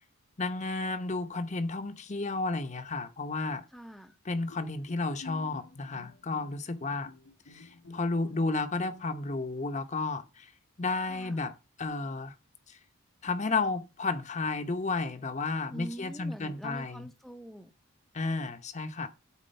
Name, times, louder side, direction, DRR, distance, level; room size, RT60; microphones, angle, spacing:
voice 1, 0.4-3.6 4.2-7.1 7.5-10.5 10.8-12.3 12.7-12.8 13.2-17.1 18.1-19.1, left 3 dB, 35° left, 0.8 m, -32 dB
voice 2, 3.7-4.2 11.1-11.5 15.7-17.7, right 1 dB, ahead, 0.6 m, -44 dB
Bowed string instrument, 4.5-9.3, left 3 dB, 85° left, 2.0 m, -51 dB
8.4 x 4.3 x 6.6 m
head